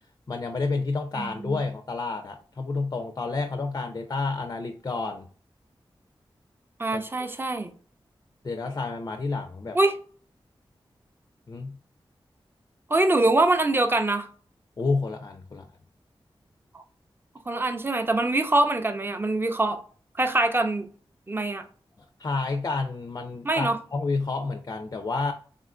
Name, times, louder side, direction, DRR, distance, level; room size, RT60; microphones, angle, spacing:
voice 1, 0.3-5.3 6.9-7.0 8.4-9.8 11.5-11.8 14.8-15.7 22.2-25.3, left 3 dB, 35° left, 0.3 m, -29 dB
voice 2, 1.2-1.6 6.8-7.7 9.7-10.0 12.9-14.3 16.7-16.8 17.5-19.8 20.2-20.9 21.3-21.6 23.4-23.8, right 2 dB, 20° right, 0.4 m, -24 dB
3.6 x 2.4 x 2.2 m
cardioid pair, 45°, 10 cm